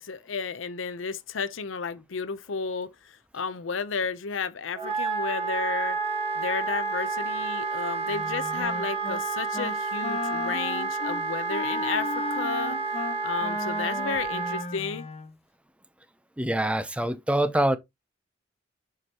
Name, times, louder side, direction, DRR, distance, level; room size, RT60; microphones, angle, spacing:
voice 1, 0.0-6.0 6.3-12.8 13.2-15.1, left 5 dB, 80° left, 0.7 m, -32 dB
Wind instrument woodwind instrument, 4.7-14.6, right 4 dB, 30° right, 1.5 m, -30 dB
Wind instrument woodwind instrument 2, 8.1-9.2 9.5-9.8 10.0-15.3, left 3 dB, 35° left, 0.7 m, -35 dB
voice 2, 16.4-17.8, right 1 dB, 5° right, 0.5 m, -25 dB
7.7 x 4.8 x 2.9 m
head